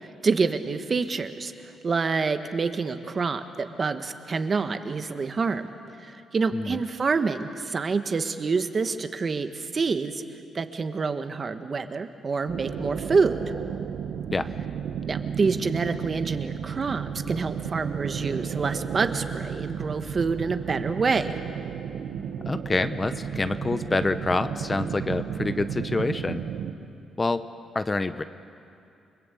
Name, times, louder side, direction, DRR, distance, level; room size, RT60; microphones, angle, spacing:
voice 1, 0.2-1.5 1.8-5.7 6.0-10.2 10.5-13.4 15.0-21.3, right 4 dB, 40° right, 8 dB, 1.5 m, -27 dB
voice 2, 6.5-6.8 14.3-14.5 22.5-26.4 27.2-27.5 27.7-28.2, left 3 dB, 25° left, 11 dB, 0.8 m, -27 dB
sound 1, 12.5-26.7, right 7 dB, 75° right, 1.6 m, -33 dB
29.5 x 20.5 x 8.5 m, 2.6 s
cardioid pair, 100°, 0 cm